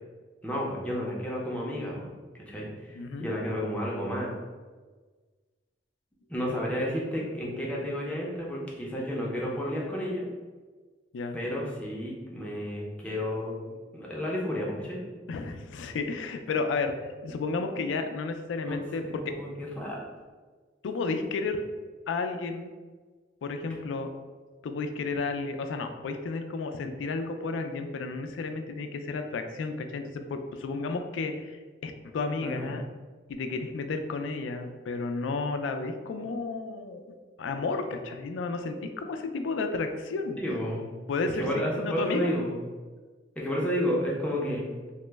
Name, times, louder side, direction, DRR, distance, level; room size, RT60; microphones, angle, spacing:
voice 1, 0.4-2.1 2.5-4.3 6.3-10.2 11.3-13.6 13.9-15.0 18.7-18.8 19.0-20.0 32.4-32.7 40.4-40.8 41.3-42.5 43.4-44.6, equal, 5° left, -4 dB, 0.5 m, -31 dB
voice 2, 2.9-3.3 11.1-11.4 15.3-16.9 17.2-19.3 20.8-21.7 22.1-22.7 23.4-24.1 24.6-32.8 33.3-37.0 37.4-40.4 41.1-42.3, left 3 dB, 85° left, 6 dB, 0.3 m, -32 dB
2.9 x 2.0 x 3.3 m, 1.4 s
head